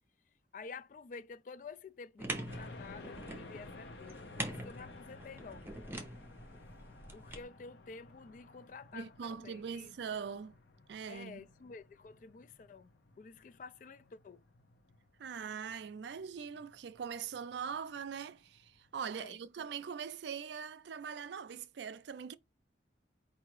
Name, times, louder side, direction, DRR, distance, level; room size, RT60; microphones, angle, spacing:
voice 1, 0.5-5.7 7.1-9.9 11.1-12.9 13.2-14.4 19.2-19.4, left 4 dB, 45° left, 0.3 m, -50 dB
sound 1, 2.2-7.4, right 1 dB, 10° right, 0.7 m, -44 dB
sound 2, 2.5-19.1, left 3 dB, 85° left, 0.8 m, -55 dB
voice 2, 8.9-10.6 10.9-11.4 15.2-22.3, right 6 dB, 80° right, 0.4 m, -42 dB
4.7 x 2.6 x 3.0 m
head